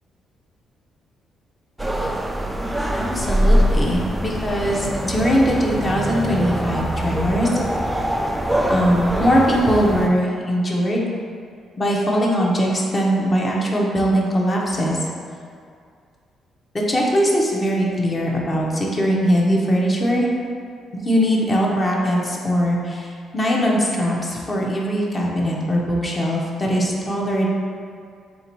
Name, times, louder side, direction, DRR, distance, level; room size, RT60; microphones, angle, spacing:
sound 1, 1.8-10.1, equal, 10° right, 0.3 m, -23 dB
voice 1, 2.9-7.6 8.7-11.1 11.8-15.1 16.7-20.3 21.0-27.5, equal, 30° left, -3 dB, 0.7 m, -21 dB
3.2 x 2.7 x 4.4 m, 2.2 s
cardioid pair, 90°, 0 cm